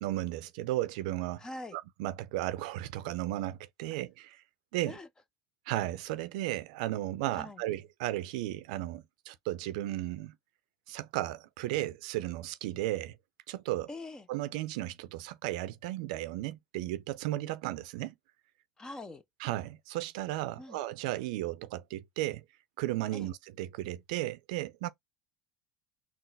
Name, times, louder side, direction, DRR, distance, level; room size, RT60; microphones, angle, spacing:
voice 1, 0.0-1.4 1.7-4.4 4.7-5.0 5.7-10.3 10.9-13.2 13.5-13.9 14.3-18.1 19.4-22.4 22.8-24.9, right 15 dB, 75° right, 0.5 m, -35 dB
voice 2, 1.4-1.8 3.9-4.0 4.9-5.1 7.3-7.6 13.9-14.3 18.8-19.2 20.6-20.8 23.1-23.3, left 2 dB, 15° left, 0.7 m, -43 dB
3.9 x 2.4 x 3.9 m
supercardioid pair, 110°, 4 cm